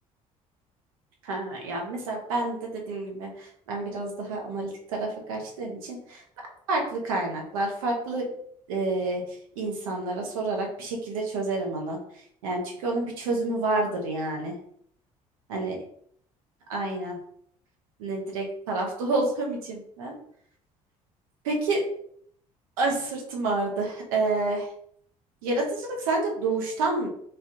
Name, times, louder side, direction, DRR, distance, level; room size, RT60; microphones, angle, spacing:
voice 1, 1.2-6.2 6.7-8.3 8.7-9.2 9.6-12.0 12.4-14.6 15.5-15.8 16.7-17.2 18.0-20.1 21.4-21.8 22.8-24.7 25.4-27.1, right 2 dB, 70° right, 1 dB, 0.8 m, -29 dB
3.2 x 2.4 x 2.7 m, 0.66 s
figure-of-eight pair, 55°, 18 cm